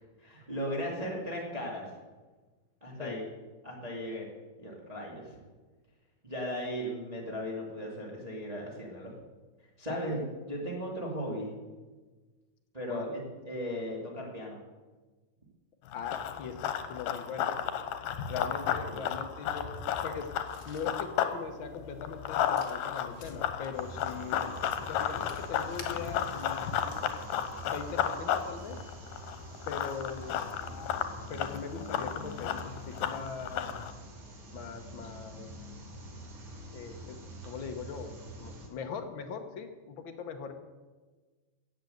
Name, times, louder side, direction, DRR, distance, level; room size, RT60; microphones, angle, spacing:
voice 1, 0.2-1.9 2.8-3.2 3.6-4.3 4.6-5.4 6.2-9.1 9.8-10.2 10.5-11.5 12.7-14.6 18.8-19.0, equal, 15° right, -3 dB, 2.0 m, -37 dB
voice 2, 9.9-10.3 12.9-13.2 15.9-17.5 18.3-19.7 20.0-20.3 20.6-24.5 24.8-27.1 27.6-28.8 29.7-30.6 31.3-33.7 34.5-35.5 36.7-40.5, left 6 dB, 65° left, 5 dB, 1.2 m, -41 dB
Run, 15.9-21.4 21.7-33.9, left 9 dB, 85° left, 2.6 m, -33 dB
sound 1, 20.1-27.3, left 4 dB, 50° left, 0.8 m, -54 dB
sound 2, 23.7-38.7, right 1 dB, 70° right, 4.0 m, -46 dB
15.5 x 8.1 x 7.9 m, 1.3 s
omnidirectional pair, 3.8 m